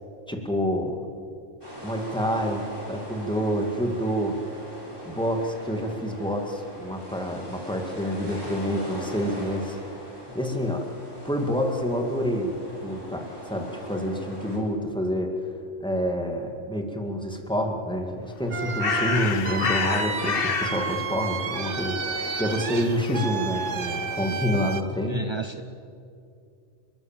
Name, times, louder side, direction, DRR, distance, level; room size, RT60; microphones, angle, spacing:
voice 1, 0.3-1.1 1.8-4.4 5.1-9.8 10.3-10.9 11.2-12.5 12.8-15.3 15.8-25.3, equal, 5° left, 2 dB, 2.2 m, -28 dB
sound 1, 1.6-14.6, equal, 20° right, 5.0 m, -40 dB
Bird, 18.3-24.3, left 7 dB, 55° left, 0.9 m, -31 dB
sound 2, 18.5-24.8, right 6 dB, 75° right, 1.3 m, -31 dB
voice 2, 25.1-25.6, right 5 dB, 40° right, 9 dB, 0.4 m, -32 dB
30.0 x 13.0 x 7.5 m, 2.5 s
omnidirectional pair, 1.2 m